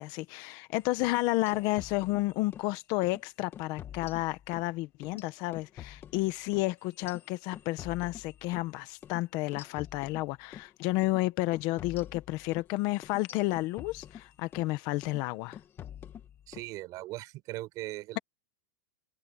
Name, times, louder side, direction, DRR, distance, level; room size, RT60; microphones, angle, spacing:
voice 1, 0.0-15.6, left 19 dB, 35° left, 1.1 m, -31 dB
sound 1, 0.9-2.7 3.0-3.2 3.5-4.7 5.0-8.7 9.0-9.2 9.5-10.7 11.0-11.2 11.5-14.7 15.0-15.3 15.5-16.7, left 10 dB, 20° left, 1.5 m, -47 dB
voice 2, 16.5-18.2, right 18 dB, 35° right, 4.2 m, -39 dB
supercardioid pair, 170°, 11 cm